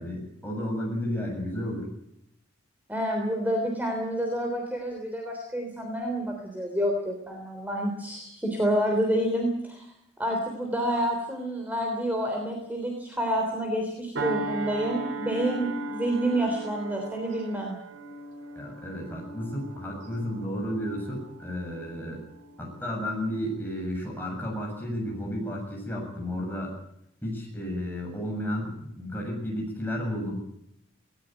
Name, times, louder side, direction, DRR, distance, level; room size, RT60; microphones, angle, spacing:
voice 1, 0.0-1.9 18.6-22.2 22.6-26.7 27.2-30.3, equal, 10° left, -1 dB, 7.3 m, -32 dB
voice 2, 2.9-9.9 10.2-17.8, equal, 10° right, 1 dB, 3.4 m, -28 dB
sound 1, 14.2-23.0 23.5-23.7, right 2 dB, 65° right, 3.8 m, -37 dB
19.0 x 18.5 x 9.1 m, 0.79 s
head